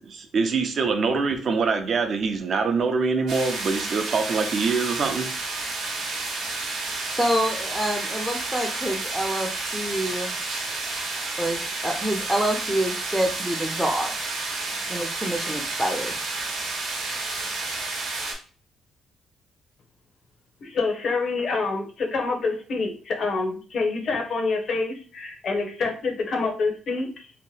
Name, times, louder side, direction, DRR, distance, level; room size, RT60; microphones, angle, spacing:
voice 1, 0.1-5.3, right 4 dB, 55° right, 0.5 m, -24 dB
sound 1, 3.3-18.3, right 3 dB, 80° right, 0.9 m, -31 dB
voice 2, 7.0-10.4 11.4-14.1 14.9-16.2, right 1 dB, 5° right, 0.5 m, -27 dB
voice 3, 20.6-27.3, left 3 dB, 60° left, 0.7 m, -27 dB
2.9 x 2.2 x 3.1 m
cardioid pair, 90°, 0 cm